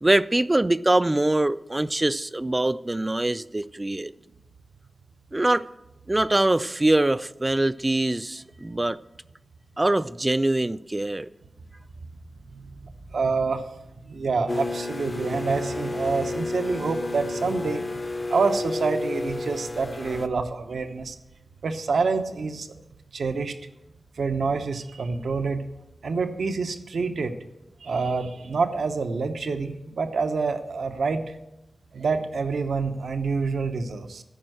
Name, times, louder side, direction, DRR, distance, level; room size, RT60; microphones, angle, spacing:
voice 1, 0.0-4.1 5.3-5.7 6.1-9.0 9.8-11.3, right 2 dB, 25° right, 0.3 m, -23 dB
voice 2, 12.5-13.7 14.1-18.0 18.3-21.2 21.6-22.7 23.1-23.5 24.2-25.6 26.0-27.3 27.8-31.4 31.9-34.2, right 4 dB, 90° right, 0.8 m, -27 dB
sound 1, 14.5-20.3, left 2 dB, 30° left, 0.6 m, -31 dB
14.0 x 5.4 x 7.7 m
wide cardioid pair, 75°, 0 cm